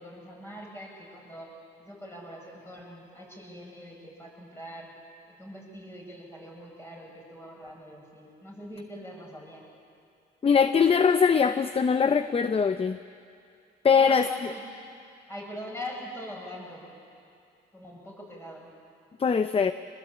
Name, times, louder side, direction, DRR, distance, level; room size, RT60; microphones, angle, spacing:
voice 1, 0.0-1.5 1.8-4.9 5.3-9.6 13.9-14.7 15.3-16.9 17.7-18.7, equal, 10° left, -2 dB, 7.9 m, -42 dB
voice 2, 10.4-13.0 13.8-14.3 19.2-19.7, left 6 dB, 30° left, 11 dB, 0.6 m, -22 dB
24.0 x 20.5 x 8.6 m, 2.4 s
cardioid pair, 90°, 20 cm